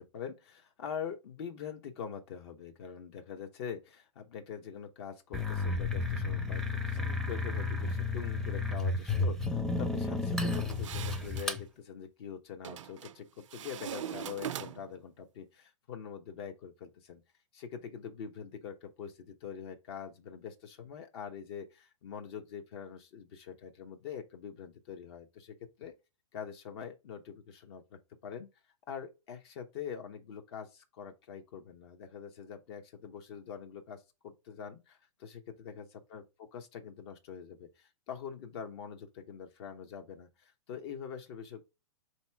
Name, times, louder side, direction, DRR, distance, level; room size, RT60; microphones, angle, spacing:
voice 1, 0.0-17.2 17.5-25.9 26.3-28.5 28.9-41.6, left 7 dB, 50° left, 0.9 m, -44 dB
sound 1, 5.3-11.6, left 3 dB, ahead, 0.6 m, -32 dB
sound 2, 10.4-11.6 12.6-13.2 13.5-15.0, right 9 dB, 65° right, 0.5 m, -41 dB
3.7 x 2.8 x 4.5 m
hypercardioid pair, 115°, 17 cm